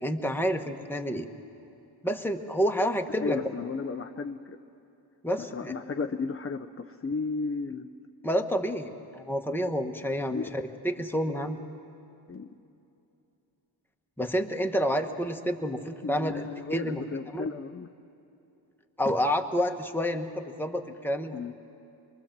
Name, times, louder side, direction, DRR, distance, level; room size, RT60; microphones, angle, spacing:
voice 1, 0.0-1.3 2.0-3.4 5.2-5.7 8.2-11.6 14.2-17.0 17.3-17.5 19.0-21.3, equal, 5° left, 4 dB, 1.3 m, -29 dB
voice 2, 3.2-4.6 5.5-7.9 10.3-10.5 12.3-12.5 16.0-17.9 21.3-21.5, left 4 dB, 30° left, 6 dB, 0.6 m, -34 dB
25.5 x 23.0 x 7.4 m, 2.8 s
wide cardioid pair, 85°, 47 cm